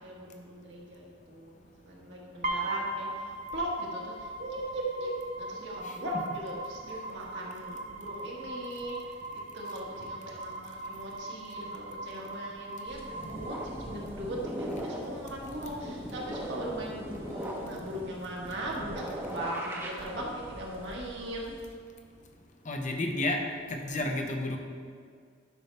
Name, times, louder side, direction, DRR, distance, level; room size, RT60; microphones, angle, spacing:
voice 1, 0.0-21.5, right 1 dB, 65° right, -3 dB, 1.5 m, -39 dB
sound 1, 2.4-14.4, right 2 dB, 40° right, 0.7 m, -40 dB
sound 2, 12.9-21.7, right 1 dB, 10° right, 0.8 m, -40 dB
voice 2, 22.7-23.4 23.7-24.6, left 2 dB, 40° left, 3 dB, 0.8 m, -31 dB
10.5 x 5.6 x 3.4 m, 2.1 s
head